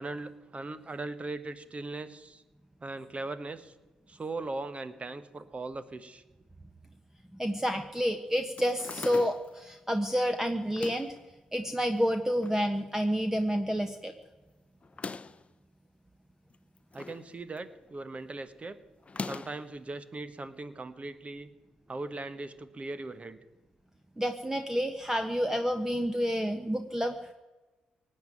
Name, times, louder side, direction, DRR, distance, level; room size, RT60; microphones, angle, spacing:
voice 1, 0.0-2.4 2.8-3.7 4.1-6.2 16.9-18.8 19.2-21.5 21.9-23.4, right 2 dB, 35° right, 13 dB, 1.3 m, -39 dB
voice 2, 7.4-11.1 11.5-14.1 24.2-27.2, equal, 10° right, 7 dB, 1.2 m, -29 dB
sound 1, 8.6-9.6 10.6-11.2 12.0-12.6 13.0-13.1 13.3-13.4 14.8-15.5 16.5-17.3 17.6-17.9 19.0-19.7, left 4 dB, 35° left, 0.7 m, -41 dB
18.0 x 7.8 x 9.2 m, 1.2 s
hypercardioid pair, 45°, 4 cm